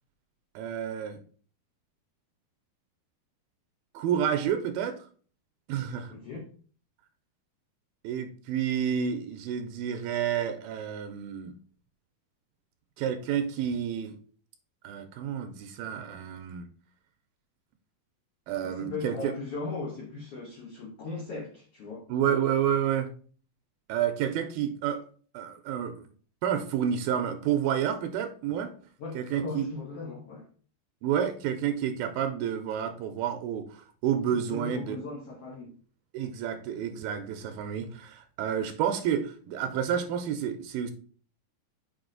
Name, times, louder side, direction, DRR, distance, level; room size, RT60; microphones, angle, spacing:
voice 1, 0.6-1.2 3.9-5.0 5.7-6.1 8.0-11.5 13.0-14.1 14.8-16.7 18.5-19.3 22.1-23.1 23.9-25.0 25.3-26.0 26.4-28.7 29.2-29.7 31.0-35.0 36.1-40.9, right 9 dB, 85° right, 7 dB, 2.3 m, -30 dB
voice 2, 6.1-6.5 18.6-22.1 29.0-30.5 34.3-35.7, left 4 dB, 90° left, 0 dB, 1.3 m, -38 dB
6.1 x 5.0 x 3.8 m, 0.43 s
omnidirectional pair, 4.4 m